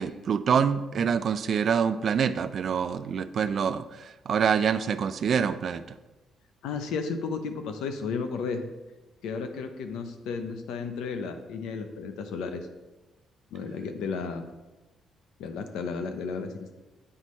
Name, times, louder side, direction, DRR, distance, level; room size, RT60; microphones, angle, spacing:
voice 1, 0.0-5.8, right 7 dB, 55° right, 12 dB, 0.4 m, -26 dB
voice 2, 6.6-8.6 9.2-12.7 13.5-14.4 15.4-16.7, left 5 dB, 90° left, 7 dB, 0.7 m, -33 dB
8.6 x 5.4 x 3.1 m, 1.1 s
cardioid pair, 90°, 0 cm